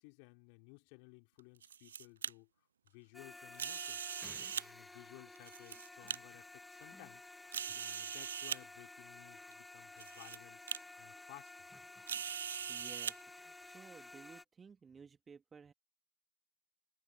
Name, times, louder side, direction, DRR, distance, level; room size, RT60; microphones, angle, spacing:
voice 1, 0.0-2.5 2.8-4.0 4.5-7.3 7.7-10.6 11.0-11.7, left 40 dB or more, 45° left, 4.2 m, -58 dB
sound 1, 1.4-2.3 3.5-4.7 5.4-6.2 6.8-6.9 7.5-8.6 9.5-9.6 10.0-10.4 10.7-10.8 12.1-13.1, right 8 dB, 65° right, 0.4 m, -41 dB
sound 2, 3.1-14.4, left 2 dB, 5° left, 0.5 m, -54 dB
voice 2, 12.7-15.7, right 6 dB, 15° right, 2.6 m, -56 dB
figure-of-eight pair, 90°, 0 cm